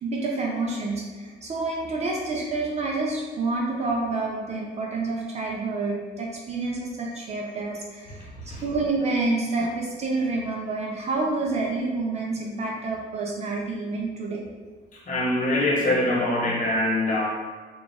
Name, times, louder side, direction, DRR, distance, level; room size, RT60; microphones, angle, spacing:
voice 1, 0.0-8.3 8.6-14.4, right 3 dB, 40° right, -2 dB, 0.5 m, -28 dB
voice 2, 15.1-17.3, left 1 dB, 45° left, -3 dB, 1.0 m, -23 dB
3.9 x 2.3 x 3.4 m, 1.4 s
cardioid pair, 135°, 18 cm